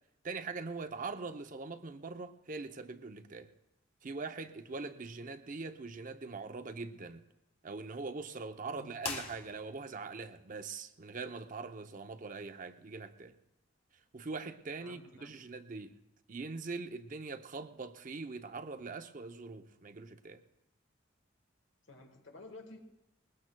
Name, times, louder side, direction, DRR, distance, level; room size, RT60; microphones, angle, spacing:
voice 1, 0.2-3.5 4.0-7.2 7.6-13.3 14.1-16.0 16.3-20.4, right 4 dB, 40° right, 0.6 m, -42 dB
voice 2, 8.7-9.0 14.8-15.4 21.9-22.9, left 2 dB, 70° left, 1.5 m, -52 dB
sound 1, 9.0-10.0, left 4 dB, 30° left, 1.6 m, -42 dB
21.0 x 20.5 x 2.2 m
head